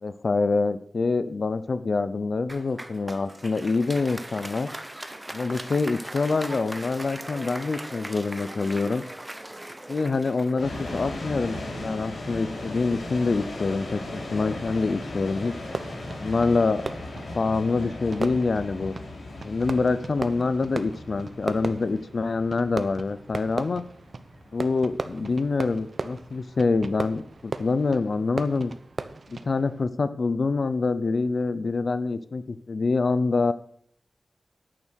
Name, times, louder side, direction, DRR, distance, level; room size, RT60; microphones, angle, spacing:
voice 1, 0.0-4.7 5.3-9.0 9.9-15.5 16.2-16.8 17.3-18.9 19.4-23.8 24.5-28.7 29.3-33.5, left 3 dB, 60° left, 13 dB, 0.7 m, -26 dB
Applause, 2.5-11.8, right 1 dB, 15° right, 1.1 m, -39 dB
sound 1, 10.6-27.6, left 1 dB, 75° left, 4.4 m, -38 dB
Fireworks, 15.6-29.8, right 3 dB, 55° right, 0.9 m, -37 dB
11.0 x 8.9 x 6.4 m, 0.62 s
wide cardioid pair, 115°, 0 cm